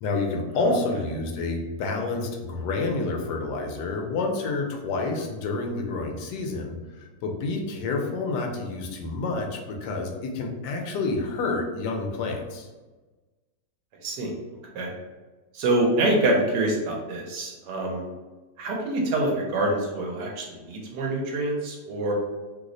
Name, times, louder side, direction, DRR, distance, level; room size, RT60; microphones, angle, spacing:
voice 1, 0.0-12.7, left 3 dB, 80° left, 2 dB, 1.2 m, -29 dB
voice 2, 14.0-14.3 14.7-14.9 15.5-18.0 18.6-22.1, right 2 dB, 80° right, -1 dB, 1.2 m, -26 dB
3.1 x 2.0 x 3.7 m, 1.2 s
omnidirectional pair, 1.8 m